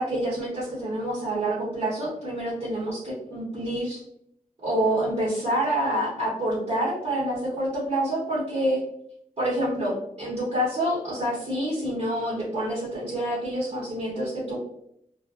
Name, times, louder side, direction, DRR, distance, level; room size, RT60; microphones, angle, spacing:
voice 1, 0.0-4.0 4.6-8.8 9.4-14.6, right 1 dB, 50° right, -8 dB, 1.1 m, -27 dB
2.4 x 2.2 x 2.4 m, 0.74 s
wide cardioid pair, 85°, 15 cm